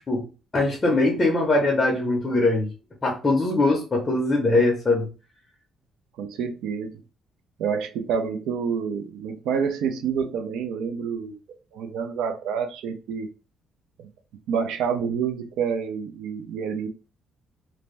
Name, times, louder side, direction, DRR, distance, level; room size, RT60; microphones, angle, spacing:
voice 1, 0.5-2.7 3.0-5.1, left 2 dB, 20° left, -1 dB, 0.6 m, -21 dB
voice 2, 6.2-7.0 7.6-13.3 14.0-14.1 14.5-16.9, right 6 dB, 80° right, 7 dB, 0.5 m, -28 dB
2.6 x 2.1 x 3.1 m, 0.34 s
cardioid pair, 175°, 0 cm